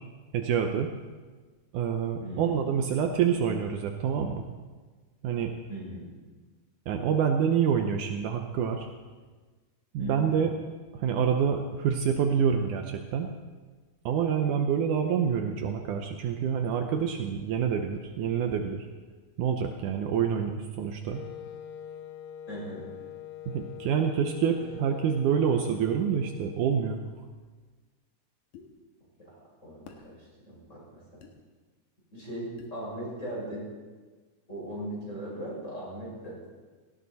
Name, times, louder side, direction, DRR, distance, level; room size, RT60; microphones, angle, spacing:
voice 1, 0.3-0.9 1.7-4.4 5.2-5.5 6.9-8.9 9.9-10.5 10.9-13.3 14.1-18.9 19.4-21.2 23.5-27.0, right 7 dB, 90° right, 4 dB, 1.7 m, -27 dB
voice 2, 2.2-2.6 5.7-6.1 10.0-10.4 22.5-22.8 29.2-29.3 29.6-31.0 32.1-33.6 34.5-36.4, right 1 dB, 15° left, -5 dB, 6.3 m, -38 dB
Wind instrument woodwind instrument, 21.1-26.8, left 9 dB, 80° left, 2.1 m, -44 dB
sound 1, 28.5-28.7 29.9-30.1 31.2-31.3 32.6-32.8, left 6 dB, 60° left, 2.4 m, -48 dB
18.0 x 16.0 x 4.2 m, 1.4 s
omnidirectional pair, 4.7 m